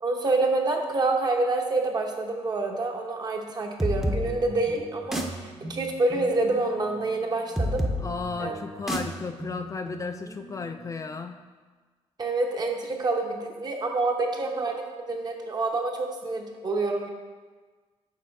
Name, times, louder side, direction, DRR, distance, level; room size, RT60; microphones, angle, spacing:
voice 1, 0.0-7.8 8.4-8.6 12.2-17.1, right 2 dB, 40° right, 2 dB, 0.9 m, -27 dB
sound 1, 3.8-11.2, equal, 5° right, 0.7 m, -33 dB
voice 2, 8.0-11.4, left 4 dB, 30° left, 7 dB, 0.3 m, -34 dB
6.7 x 4.2 x 4.7 m, 1.4 s
cardioid pair, 100°, 11 cm